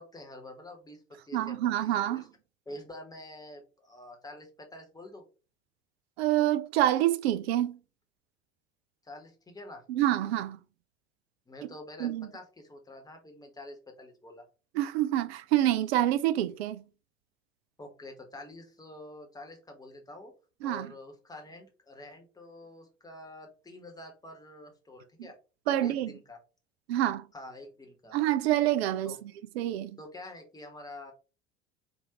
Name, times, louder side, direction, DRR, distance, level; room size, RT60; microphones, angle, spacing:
voice 1, 0.0-2.3 2.7-5.2 9.0-9.8 11.5-14.4 17.8-20.3 20.6-25.4 25.7-26.4 27.3-28.2 29.0-29.2 30.0-31.1, left 1 dB, 10° left, 1.0 m, -47 dB
voice 2, 1.3-2.2 6.2-7.8 9.9-10.6 12.0-12.3 14.8-16.8 20.6-20.9 25.7-26.1 26.9-27.2 28.1-29.2 29.6-30.0, right 13 dB, 65° right, 0.5 m, -27 dB
3.6 x 2.5 x 2.8 m
figure-of-eight pair, 70°, 35 cm